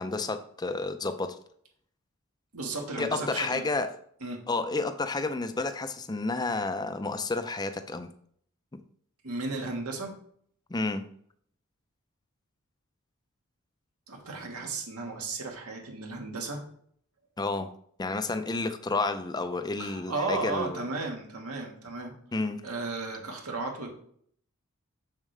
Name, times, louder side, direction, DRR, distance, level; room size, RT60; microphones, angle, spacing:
voice 1, 0.0-1.4 3.0-3.9 4.5-8.1 10.7-11.0 17.4-17.7 18.0-20.8 22.3-22.6, left 3 dB, 20° left, 9 dB, 0.5 m, -30 dB
voice 2, 2.5-3.7 4.2-4.4 9.2-10.1 14.1-16.6 19.8-22.2 22.6-23.9, right 3 dB, 80° right, 1 dB, 1.7 m, -34 dB
7.2 x 6.4 x 3.3 m, 0.63 s
head